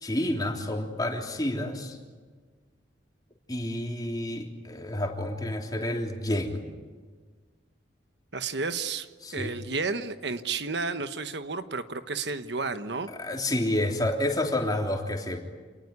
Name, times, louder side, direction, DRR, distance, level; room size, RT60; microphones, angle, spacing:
voice 1, 0.0-2.0 3.5-6.6 9.2-9.5 13.2-15.4, left 1 dB, 20° left, 2 dB, 3.3 m, -29 dB
voice 2, 8.3-13.1, right 4 dB, 65° right, 10 dB, 1.2 m, -32 dB
28.0 x 19.5 x 9.7 m, 1.5 s
head